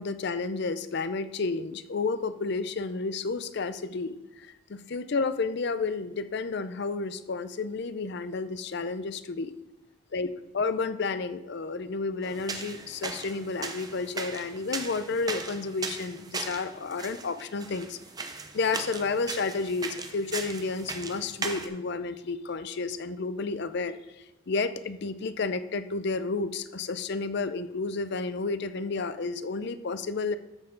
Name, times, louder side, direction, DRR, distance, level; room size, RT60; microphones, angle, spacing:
voice 1, 0.0-9.5 10.1-10.3 10.5-18.0 18.3-30.4, left 4 dB, 55° left, 12 dB, 0.5 m, -31 dB
sound 1, 12.2-21.7, right 4 dB, 20° right, 0.7 m, -38 dB
13.0 x 6.7 x 3.8 m, 0.99 s
head